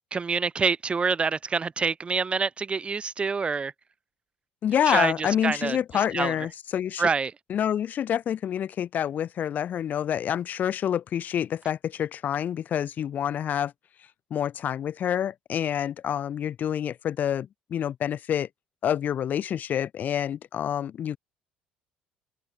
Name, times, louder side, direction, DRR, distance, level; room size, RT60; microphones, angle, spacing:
voice 1, 0.1-3.7 4.9-5.8 6.1-6.3 7.0-7.3, right 5 dB, 30° right, 3.2 m, -26 dB
voice 2, 4.6-7.1 7.5-13.7 14.3-18.5 18.8-21.2, left 9 dB, 55° left, 3.6 m, -27 dB
hypercardioid pair, 70°, 4 cm